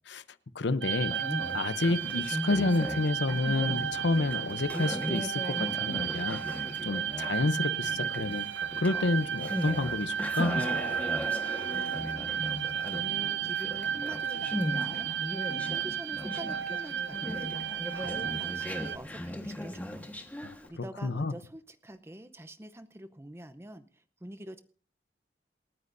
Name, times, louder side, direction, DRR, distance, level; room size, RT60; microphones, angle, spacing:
voice 1, 0.5-1.2 1.5-6.4 6.8-8.5 8.8-10.7 20.4-20.5 21.0-21.3, left 2 dB, 80° left, 0.8 m, -29 dB
sound 1, 0.8-19.0, right 9 dB, 80° right, 0.6 m, -33 dB
Conversation, 1.0-20.7, left 1 dB, 10° left, 1.4 m, -38 dB
voice 2, 11.4-15.1 15.6-20.1 20.4-24.6, right 1 dB, 15° right, 0.7 m, -46 dB
27.5 x 9.6 x 2.6 m
head